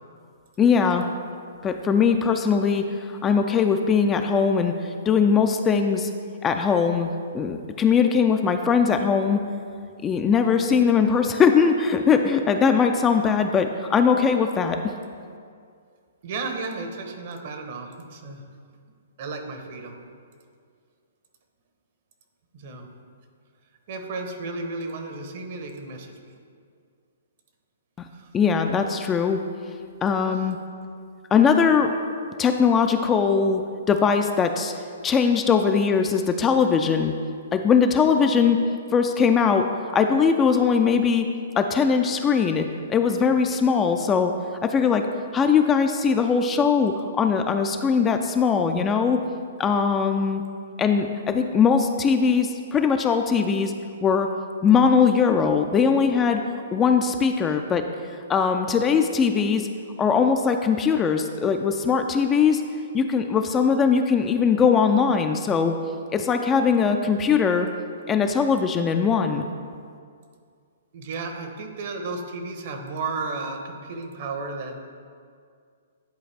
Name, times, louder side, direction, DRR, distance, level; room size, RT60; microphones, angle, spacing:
voice 1, 0.6-1.1 1.6-6.1 6.4-9.4 10.0-14.8 28.3-29.4 30.0-30.6 31.3-31.9 32.4-33.6 33.9-34.7 35.0-37.1 37.5-38.7 38.9-41.3 41.6-44.3 44.6-45.1 45.3-49.2 49.6-50.4 50.8-53.7 54.0-54.3 54.6-56.4 56.7-57.9 58.3-59.7 60.0-62.6 62.9-65.8 66.1-67.7 68.1-69.4, left 6 dB, 20° left, 6 dB, 0.3 m, -20 dB
voice 2, 16.2-18.4 19.2-20.0 22.5-22.9 23.9-26.4 28.1-28.3 70.9-74.8, right 3 dB, 50° right, 5 dB, 0.9 m, -33 dB
10.5 x 4.1 x 3.3 m, 2.2 s
hypercardioid pair, 140°, 0 cm